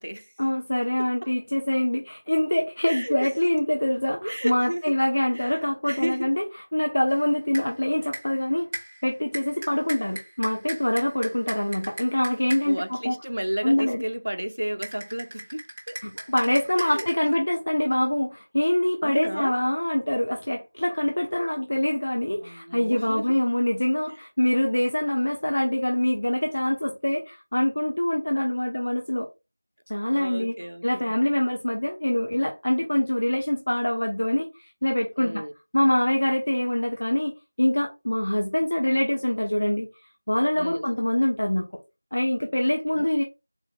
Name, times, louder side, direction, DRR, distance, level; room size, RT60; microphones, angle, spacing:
voice 1, 0.4-8.7 9.0-13.1 13.6-14.0 16.0-29.3 29.9-30.5 30.8-35.5 35.7-39.9 40.3-41.7 42.1-43.2, left 1 dB, 45° left, 0.5 m, -25 dB
voice 2, 1.0-1.3 2.9-3.3 4.2-4.8 5.3-5.5 5.8-6.3 12.6-16.0 16.8-17.4 19.0-19.6 22.4-23.3 30.1-31.1 35.2-35.5 40.5-41.0 42.9-43.1, right 1 dB, 80° right, 0.6 m, -33 dB
sound 1, 7.1-7.8 8.1-8.4 8.7-12.9 14.8-17.1, right 1 dB, 10° right, 0.5 m, -39 dB
4.0 x 2.3 x 3.9 m
figure-of-eight pair, 180°, 0 cm